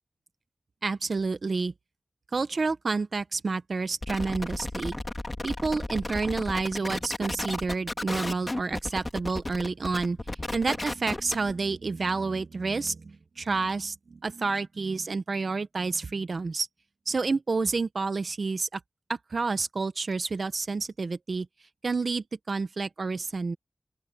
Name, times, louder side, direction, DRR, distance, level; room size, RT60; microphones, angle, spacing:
voice 1, 0.8-1.7 2.3-5.0 5.4-16.7 17.1-18.8 19.1-21.5 21.8-23.6, right 4 dB, 70° right, 1.0 m, -29 dB
sound 1, 4.0-11.5, left 2 dB, 30° left, 2.9 m, -34 dB
open air
cardioid pair, 50°, 0 cm